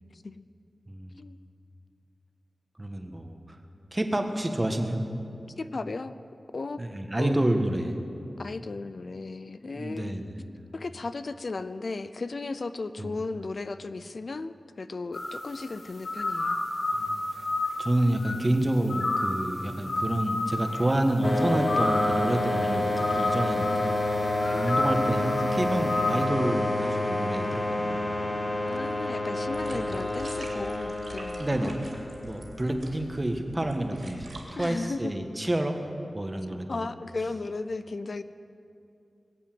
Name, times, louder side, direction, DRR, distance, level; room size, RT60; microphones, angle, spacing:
voice 1, 0.1-0.4 1.2-1.4 5.6-6.2 6.5-7.4 8.4-10.2 10.7-16.6 24.4-24.7 28.6-31.9 34.5-35.1 36.7-38.2, left 3 dB, 60° left, 12 dB, 0.5 m, -35 dB
voice 2, 2.8-3.6 3.9-5.0 6.8-8.0 9.7-10.4 13.0-13.1 17.0-17.5 17.8-24.2 24.5-28.4 29.7-30.0 31.4-31.7 32.2-35.8 36.1-36.8, right 1 dB, 25° right, 5 dB, 1.4 m, -29 dB
sound 1, 15.1-15.7 16.0-18.5 18.9-19.5 19.9-21.1 21.7-22.3 22.9-24.1 24.4-25.5 25.9-26.3, left 2 dB, 85° left, 2.3 m, -30 dB
sound 2, 21.2-32.6, left 1 dB, 25° left, 1.0 m, -29 dB
sound 3, 29.4-34.6, right 2 dB, 55° right, 3.1 m, -45 dB
21.5 x 8.3 x 7.7 m, 2.6 s
wide cardioid pair, 90°, 0 cm